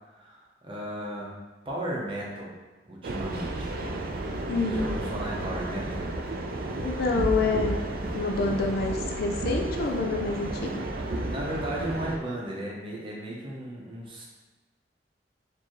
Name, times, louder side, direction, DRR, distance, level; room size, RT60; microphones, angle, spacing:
voice 1, 0.2-1.3 1.6-2.5 2.9-3.7 4.6-6.1 11.1-14.3, right 1 dB, 30° right, -3 dB, 0.8 m, -35 dB
sound 1, 3.0-12.2, right 2 dB, 60° right, 0.4 m, -32 dB
voice 2, 4.5-4.9 6.8-7.8 8.1-10.8, left 3 dB, 60° left, 2 dB, 0.4 m, -27 dB
4.4 x 2.7 x 3.0 m, 1.2 s
head